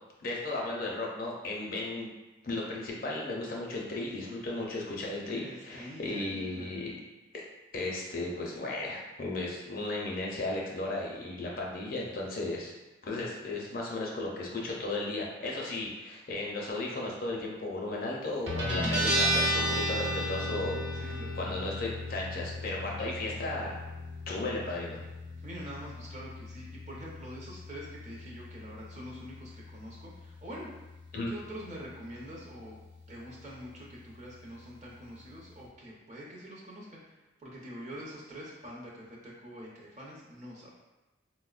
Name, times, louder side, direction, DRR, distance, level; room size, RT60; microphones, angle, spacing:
voice 1, 0.2-2.1 2.4-6.9 7.7-12.7 13.0-23.8 24.3-25.0 31.1-31.3, left 2 dB, 45° left, -2 dB, 0.5 m, -35 dB
voice 2, 5.4-6.7 20.9-21.6 25.4-30.7 31.1-32.8 33.1-37.0 37.4-40.7, equal, 35° right, -4 dB, 0.6 m, -45 dB
Guitar, 18.5-35.7, equal, 65° right, 0.9 m, -36 dB
4.1 x 2.1 x 2.4 m, 1.1 s
head